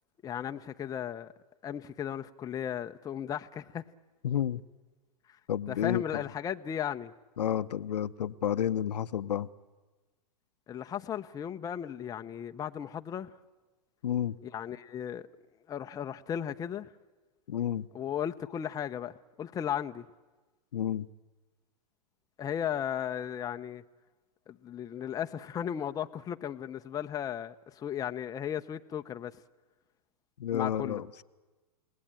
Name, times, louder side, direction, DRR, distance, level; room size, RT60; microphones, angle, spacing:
voice 1, 0.2-1.3 1.6-3.8 5.3-5.4 5.7-7.1 10.7-13.3 14.4-15.3 15.7-16.9 17.9-20.1 22.4-23.8 24.5-29.3 30.5-31.0, left 9 dB, 15° left, 0.7 m, -36 dB
voice 2, 4.2-4.6 5.5-6.2 7.4-9.5 14.0-14.4 17.5-17.9 20.7-21.1 30.4-31.1, left 10 dB, 80° left, 0.8 m, -30 dB
29.5 x 18.5 x 8.9 m
hypercardioid pair, 120°, 21 cm